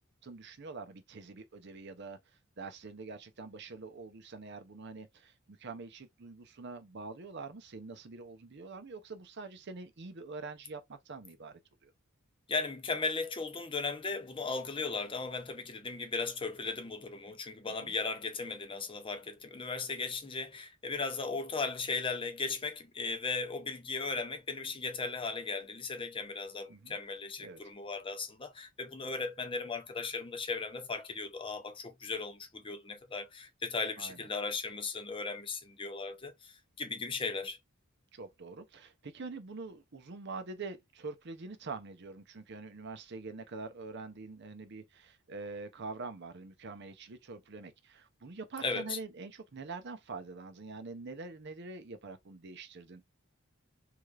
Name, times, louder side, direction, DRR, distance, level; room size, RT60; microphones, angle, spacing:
voice 1, 0.2-2.2 2.6-11.9 17.8-17.9 26.7-27.0 27.4-27.6 34.0-34.3 38.1-53.0, right 3 dB, 55° right, 0.6 m, -45 dB
voice 2, 12.5-37.6 48.6-49.0, left 4 dB, 25° left, 0.6 m, -37 dB
3.4 x 3.3 x 2.4 m
head